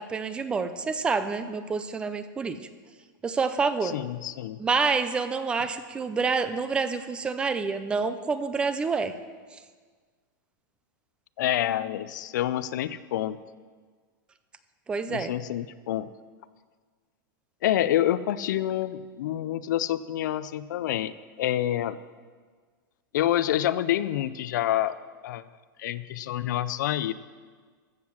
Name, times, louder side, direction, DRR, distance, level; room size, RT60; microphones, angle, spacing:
voice 1, 0.0-2.6 3.2-4.0 4.6-9.1 14.9-15.3, right 4 dB, 10° right, 12 dB, 0.4 m, -27 dB
voice 2, 3.8-4.6 11.4-13.4 15.1-16.1 17.6-22.0 23.1-25.0 25.2-25.4 25.8-27.1, left 12 dB, 60° left, 15 dB, 0.5 m, -27 dB
14.5 x 7.6 x 6.2 m, 1.6 s
supercardioid pair, 170°, 11 cm